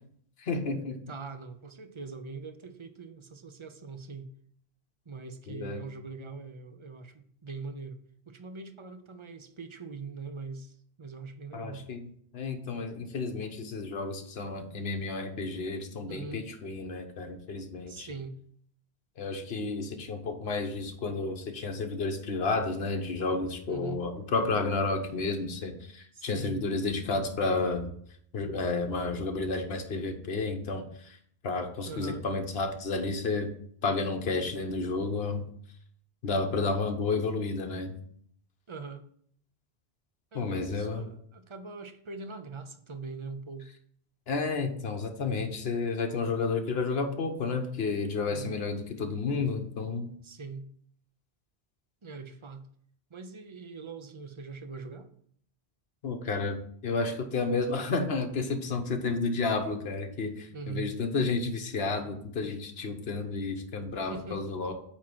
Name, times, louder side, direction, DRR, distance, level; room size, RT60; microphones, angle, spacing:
voice 1, 0.4-1.0 5.5-5.8 11.5-18.1 19.2-27.9 28.3-31.2 31.4-33.5 33.8-35.5 36.2-37.9 40.3-41.1 44.3-50.1 56.0-64.7, left 3 dB, 70° left, 5 dB, 1.2 m, -31 dB
voice 2, 1.1-4.3 5.1-8.0 8.3-11.8 16.1-16.5 17.9-18.4 23.7-24.0 26.1-26.6 31.8-32.3 38.7-39.1 40.3-43.7 48.3-48.6 50.2-50.7 52.0-52.6 53.1-55.1 60.5-60.9 64.1-64.5, right 4 dB, 35° right, 9 dB, 0.6 m, -42 dB
8.6 x 3.1 x 6.0 m, 0.63 s
omnidirectional pair, 1.1 m